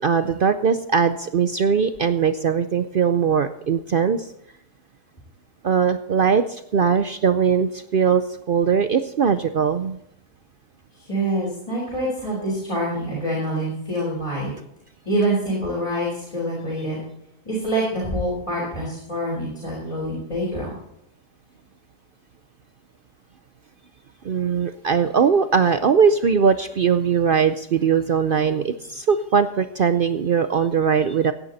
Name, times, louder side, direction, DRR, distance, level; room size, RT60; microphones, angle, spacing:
voice 1, 0.0-4.3 5.6-10.0 24.2-31.3, right 6 dB, 90° right, 10 dB, 0.4 m, -20 dB
voice 2, 11.1-14.5 15.0-17.0 17.4-20.7, right 1 dB, 20° left, -6 dB, 4.6 m, -26 dB
16.5 x 9.8 x 4.1 m, 0.79 s
omnidirectional pair, 1.7 m